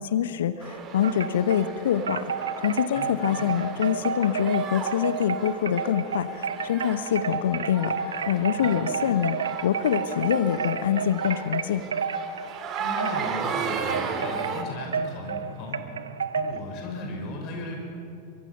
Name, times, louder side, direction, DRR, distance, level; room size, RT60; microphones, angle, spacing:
voice 1, 0.0-9.4 9.6-11.8, left 9 dB, 60° left, 13 dB, 0.9 m, -25 dB
sound 1, 0.6-14.6, right 6 dB, 30° right, 2.2 m, -36 dB
Wind chime, 1.0-1.7 2.1-16.6, right 6 dB, 70° right, 0.8 m, -31 dB
voice 2, 12.8-15.8 16.3-17.8, left 2 dB, 40° left, 1 dB, 5.7 m, -36 dB
24.0 x 23.5 x 5.9 m, 2.8 s
figure-of-eight pair, 90°, 0 cm